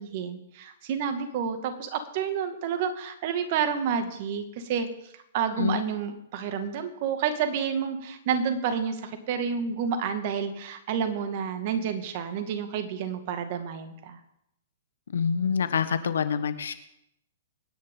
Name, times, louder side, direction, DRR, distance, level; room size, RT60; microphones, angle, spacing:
voice 1, 0.0-4.9 5.3-14.2, right 7 dB, 50° right, 7 dB, 2.1 m, -29 dB
voice 2, 15.1-16.7, left 6 dB, 75° left, 11 dB, 1.4 m, -26 dB
25.0 x 10.5 x 3.9 m, 0.79 s
hypercardioid pair, 120°, 0 cm